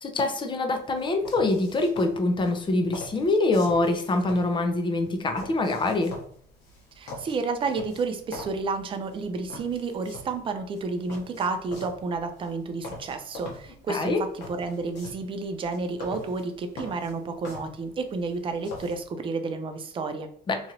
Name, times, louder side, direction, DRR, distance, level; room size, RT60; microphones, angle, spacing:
voice 1, 0.0-6.2 13.9-14.2 20.5-20.7, left 2 dB, 30° left, 5 dB, 0.5 m, -25 dB
sound 1, 0.8-19.1, left 2 dB, 85° left, 1.2 m, -45 dB
voice 2, 7.0-20.3, right 4 dB, 30° right, 7 dB, 0.4 m, -31 dB
3.0 x 2.5 x 2.9 m, 0.62 s
cardioid pair, 110°, 17 cm